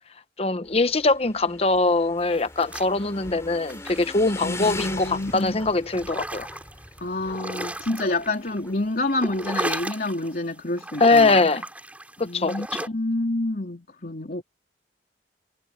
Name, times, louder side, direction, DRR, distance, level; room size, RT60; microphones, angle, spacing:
voice 1, 0.4-6.5 11.0-11.6 12.2-12.9, left 3 dB, 35° left, 0.9 m, -22 dB
Motorcycle / Engine, 0.6-9.9, left 2 dB, 15° left, 3.1 m, -41 dB
sound 1, 2.4-3.3 3.6-7.0 7.3-8.7 9.0-10.4 10.8-12.9, right 1 dB, 10° right, 3.2 m, -35 dB
voice 2, 4.4-5.5 7.0-11.3 12.2-14.4, left 2 dB, 55° left, 3.3 m, -28 dB
head